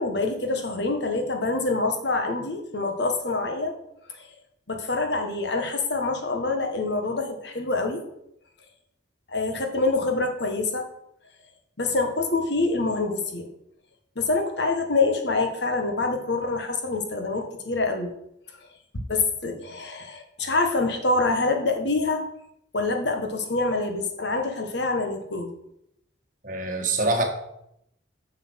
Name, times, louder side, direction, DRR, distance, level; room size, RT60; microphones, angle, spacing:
voice 1, 0.0-3.8 4.2-4.3 4.7-8.0 9.3-10.8 11.8-13.5 14.1-18.1 19.1-22.2 22.7-25.5, left 3 dB, 65° left, 4 dB, 1.5 m, -26 dB
voice 2, 26.4-27.2, right 2 dB, 45° right, 3 dB, 1.6 m, -24 dB
7.5 x 6.7 x 6.2 m, 0.78 s
head